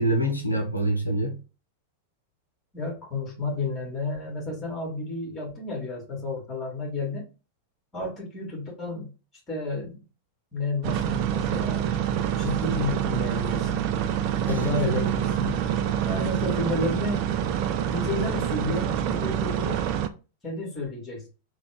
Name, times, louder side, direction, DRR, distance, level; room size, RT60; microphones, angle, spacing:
voice 1, 0.0-1.4 14.5-15.1, right 1 dB, 85° left, 0.7 m, -26 dB
voice 2, 2.7-7.3 7.9-9.1 9.5-10.0 10.5-11.9 12.4-13.9 14.4-15.6 16.0-17.2 17.9-19.8 20.4-21.3, left 3 dB, 20° left, 1.9 m, -31 dB
sound 1, 10.8-20.1, right 9 dB, 45° right, 0.4 m, -26 dB
3.4 x 2.4 x 3.5 m
figure-of-eight pair, 90°, 0 cm